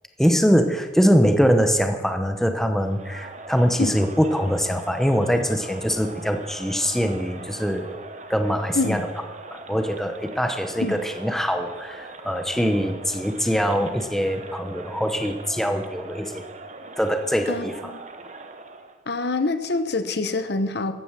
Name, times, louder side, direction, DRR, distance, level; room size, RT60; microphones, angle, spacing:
voice 1, 0.2-8.0 8.3-9.1 9.5-16.4 17.0-17.9, equal, ahead, 6 dB, 0.9 m, -23 dB
Crowd, 2.7-19.0, right 3 dB, 35° right, 1.0 m, -41 dB
voice 2, 17.5-18.0 19.1-20.9, left 3 dB, 60° left, 10 dB, 0.9 m, -25 dB
14.0 x 9.3 x 7.4 m, 1.2 s
head